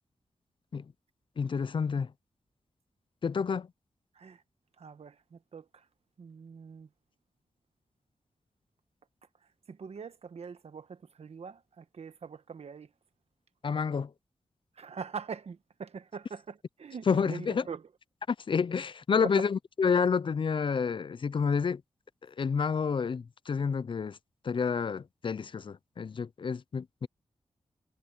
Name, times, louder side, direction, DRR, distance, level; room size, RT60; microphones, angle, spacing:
voice 1, 1.4-2.1 3.2-3.7 13.6-14.1 17.1-17.6 18.3-21.8 22.4-24.2 24.4-27.1, left 6 dB, 50° left, 0.4 m, -29 dB
voice 2, 4.8-5.8 6.2-6.9 9.7-12.9 14.8-17.9 19.2-19.5, right 6 dB, 75° right, 1.2 m, -43 dB
wide cardioid pair, 80°, 11 cm